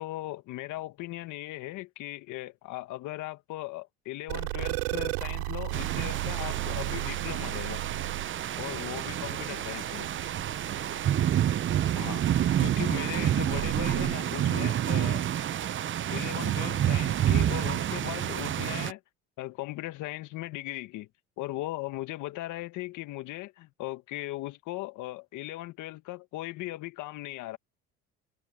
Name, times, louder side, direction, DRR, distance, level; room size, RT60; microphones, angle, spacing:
voice 1, 0.0-7.8 8.6-10.1 11.9-12.2 12.6-15.2 16.1-19.0 19.4-21.1 21.4-27.6, left 17 dB, 70° left, 1.6 m, -38 dB
sound 1, 4.3-14.1, right 25 dB, 90° right, 6.4 m, -36 dB
sound 2, 5.7-18.9, right 11 dB, 40° right, 0.7 m, -29 dB
supercardioid pair, 80°, 32 cm